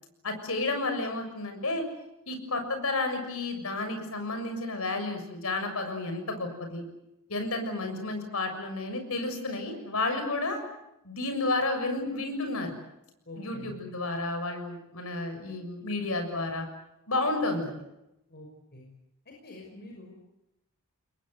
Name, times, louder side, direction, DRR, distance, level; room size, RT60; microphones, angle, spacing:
voice 1, 0.2-1.8 2.3-6.8 7.3-10.6 11.0-12.7 13.4-16.6 17.1-17.7, left 2 dB, 70° left, 6 dB, 6.7 m, -31 dB
voice 2, 13.3-13.7 18.3-18.8 19.3-20.1, left 2 dB, 50° left, 0 dB, 5.8 m, -46 dB
29.5 x 22.0 x 8.1 m, 0.88 s
head